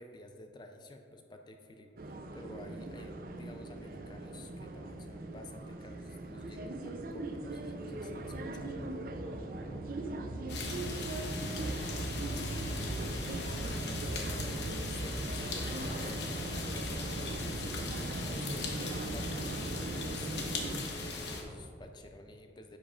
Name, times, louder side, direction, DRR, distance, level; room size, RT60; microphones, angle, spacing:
voice 1, 0.0-8.8 13.4-17.7 18.2-22.8, left 1 dB, 25° left, 5 dB, 0.4 m, -51 dB
sound 1, 2.0-20.8, right 2 dB, 50° right, 0.4 m, -39 dB
voice 2, 9.1-10.8 11.3-12.1 12.6-13.7, equal, 65° right, -1 dB, 1.3 m, -52 dB
sound 2, 10.5-21.4, left 3 dB, 65° left, 0.9 m, -39 dB
10.0 x 7.3 x 2.5 m, 2.6 s
head